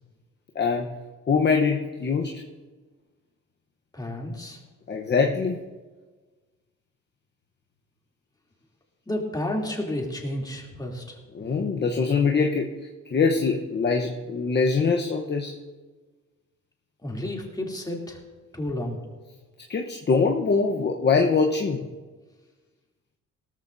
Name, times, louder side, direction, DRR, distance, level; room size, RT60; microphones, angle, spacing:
voice 1, 0.5-0.9 1.3-2.4 4.9-5.6 11.3-12.7 13.1-15.6 19.7-21.9, left 5 dB, 35° left, 1 dB, 1.0 m, -23 dB
voice 2, 3.9-4.6 9.1-11.2 17.0-18.2 18.5-19.0, left 1 dB, 15° left, -1 dB, 3.0 m, -31 dB
17.5 x 14.0 x 2.7 m, 1.3 s
cardioid pair, 90°, 30 cm